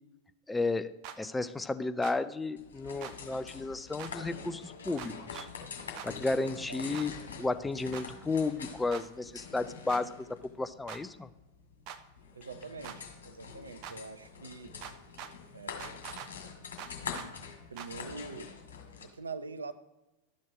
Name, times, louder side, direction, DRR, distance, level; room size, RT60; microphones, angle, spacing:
voice 1, 0.5-5.5 6.0-11.3, left 3 dB, 10° left, 12 dB, 0.4 m, -33 dB
sound 1, 1.0-1.2 2.0-2.2 3.0-3.1 4.0-4.1 5.0-5.5 6.0-6.1 6.9-7.1 7.9-8.1 8.9-9.0 9.9-10.0 10.9-11.0 11.9-12.0 12.8-13.0 13.8-14.0 14.8-15.3 15.8-16.3 16.8-17.3 17.8-17.9, right 9 dB, 40° right, 0.7 m, -43 dB
sound 2, 2.6-19.0, left 5 dB, 65° left, 2.1 m, -45 dB
voice 2, 6.4-6.8 12.3-14.7 15.5-16.0 17.7-18.5 19.0-19.7, right 4 dB, 75° right, 10 dB, 0.7 m, -44 dB
12.0 x 6.4 x 4.8 m, 1.0 s
figure-of-eight pair, 90°, 0 cm